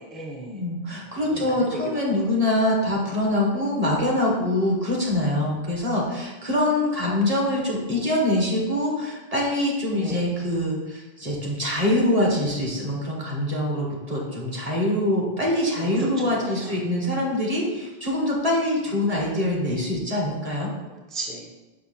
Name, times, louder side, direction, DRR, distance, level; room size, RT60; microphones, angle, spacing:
voice 1, 0.0-0.6 1.3-1.8 10.0-10.2 15.8-16.1 16.4-16.7 17.1-17.2 20.9-21.5, right 1 dB, ahead, -1 dB, 0.8 m, -35 dB
voice 2, 0.5-20.7, left 1 dB, 35° right, -3 dB, 1.7 m, -24 dB
5.7 x 5.4 x 4.3 m, 1.2 s
omnidirectional pair, 1.1 m